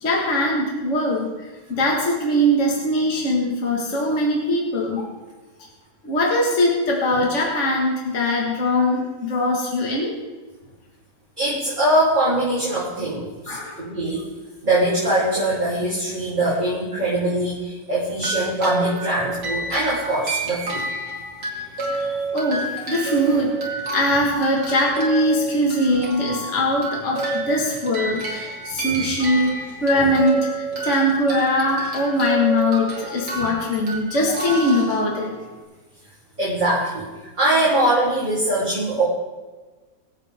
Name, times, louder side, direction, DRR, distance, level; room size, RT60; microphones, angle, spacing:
voice 1, 0.0-5.1 6.0-10.2 13.5-13.8 21.9-35.3, left 1 dB, 45° left, -1 dB, 2.1 m, -22 dB
voice 2, 11.4-14.2 14.6-20.8 21.9-22.2 28.9-29.0 29.9-30.1 33.4-33.5 36.4-37.1 37.4-39.0, right 1 dB, 25° right, -8 dB, 3.5 m, -22 dB
sound 1, 18.2-35.6, right 2 dB, 70° right, 3.1 m, -29 dB
24.5 x 8.2 x 3.6 m, 1.3 s
omnidirectional pair, 1.8 m